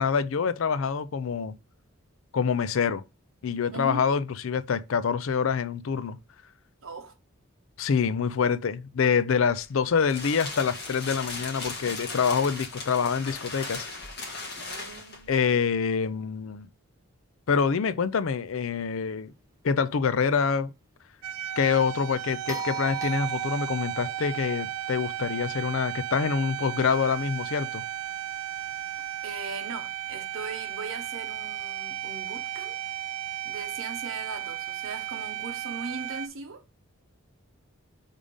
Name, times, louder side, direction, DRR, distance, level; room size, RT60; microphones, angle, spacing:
voice 1, 0.0-1.6 2.3-3.0 3.4-6.2 7.8-13.9 15.3-16.7 17.5-19.3 19.6-20.7 21.6-27.8, left 6 dB, 70° left, 0.5 m, -26 dB
voice 2, 3.7-4.1 6.8-7.1 14.6-15.6 25.5-25.6 29.2-32.8 33.4-36.6, right 3 dB, 65° right, 1.1 m, -39 dB
sound 1, 9.6-15.3, left 3 dB, 50° left, 1.5 m, -37 dB
sound 2, 21.2-36.3, right 12 dB, 90° right, 0.3 m, -35 dB
sound 3, 22.5-26.7 29.0-29.1, right 4 dB, 15° right, 0.7 m, -41 dB
5.0 x 3.7 x 5.3 m
head